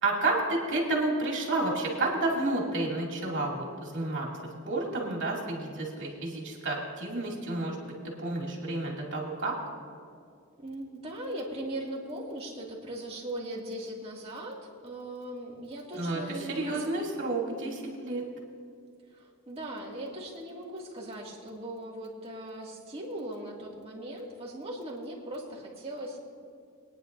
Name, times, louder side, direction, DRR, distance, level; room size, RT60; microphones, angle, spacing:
voice 1, 0.0-4.3 4.7-7.9 8.2-9.5 15.9-18.2, right 2 dB, 55° right, -2 dB, 2.6 m, -30 dB
voice 2, 10.6-16.9 19.1-26.2, right 1 dB, 25° right, -4 dB, 2.3 m, -39 dB
23.0 x 9.9 x 2.7 m, 2.4 s
head